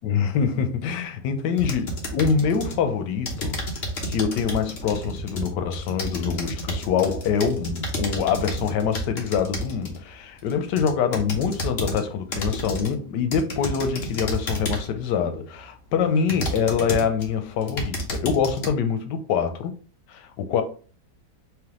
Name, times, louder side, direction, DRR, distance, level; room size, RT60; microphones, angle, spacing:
voice 1, 0.0-3.6 4.0-19.7 20.1-20.6, left 6 dB, 85° left, 1.3 m, -25 dB
sound 1, 1.6-2.8 3.3-10.0 10.5-12.0 12.3-13.0 13.3-15.0 15.6-15.7 16.3-17.3 17.6-18.7, equal, 45° left, 1.0 m, -31 dB
3.5 x 2.9 x 3.6 m
omnidirectional pair, 1.8 m